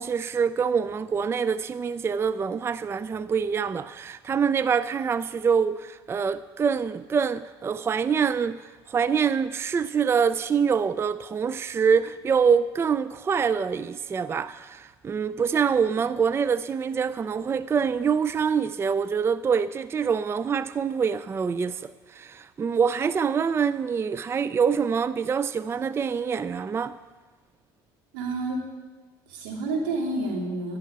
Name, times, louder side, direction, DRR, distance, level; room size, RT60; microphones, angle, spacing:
voice 1, 0.0-27.0, right 6 dB, 25° right, 0.4 m, -25 dB
voice 2, 28.1-28.6 29.3-30.8, right 2 dB, 85° right, 3.1 m, -29 dB
11.5 x 7.6 x 8.6 m
supercardioid pair, 95°, 11 cm